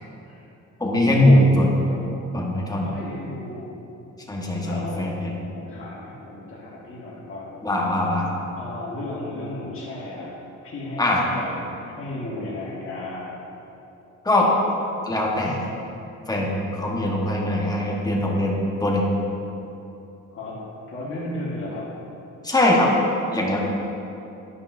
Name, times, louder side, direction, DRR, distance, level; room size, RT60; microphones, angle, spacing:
voice 1, 0.8-1.7 2.3-2.9 4.3-5.4 7.6-8.3 11.0-11.2 14.2-14.5 15.0-15.6 16.3-19.0 22.4-22.9 23.3-23.6, left 1 dB, 10° left, -2 dB, 1.2 m, -21 dB
voice 2, 1.7-2.1 2.8-3.7 4.6-5.2 5.5-7.6 8.6-10.3 10.6-13.3 20.3-20.6 20.9-21.9, left 1 dB, 45° left, -7 dB, 1.5 m, -34 dB
9.9 x 5.3 x 2.6 m, 2.9 s
cardioid pair, 90°, 30 cm